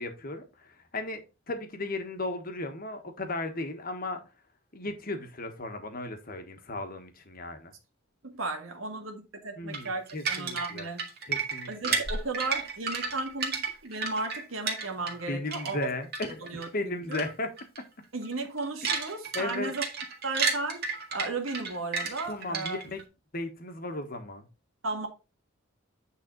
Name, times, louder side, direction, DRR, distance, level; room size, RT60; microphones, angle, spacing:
voice 1, 0.0-4.2 4.7-7.7 9.6-10.9 11.3-12.0 15.3-17.5 19.3-19.7 22.3-23.0 23.3-24.5, left 2 dB, 45° left, 1.4 m, -35 dB
voice 2, 8.2-11.1 11.7-15.9 16.4-17.2 18.1-19.8 20.2-20.9 21.1-22.8 24.8-25.1, right 3 dB, 80° right, 1.7 m, -35 dB
sound 1, 9.7-15.2 15.5-16.7 17.1-17.3 17.6-17.8 18.2-23.0, right 5 dB, 50° right, 1.9 m, -32 dB
9.0 x 4.0 x 3.9 m
head